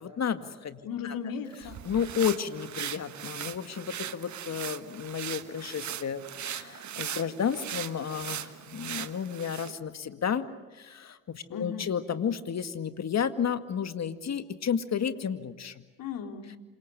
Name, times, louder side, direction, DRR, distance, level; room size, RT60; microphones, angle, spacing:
voice 1, 0.0-0.8 1.0-1.2 1.9-10.5 10.7-15.8, left 7 dB, 45° left, 10 dB, 2.1 m, -32 dB
voice 2, 0.8-1.8 11.5-11.9 16.0-16.6, left 6 dB, 60° left, 6 dB, 3.0 m, -36 dB
sound 1, 1.5-9.8, right 10 dB, 50° right, 1.4 m, -39 dB
28.0 x 26.5 x 6.8 m, 1.2 s
hypercardioid pair, 55°, 38 cm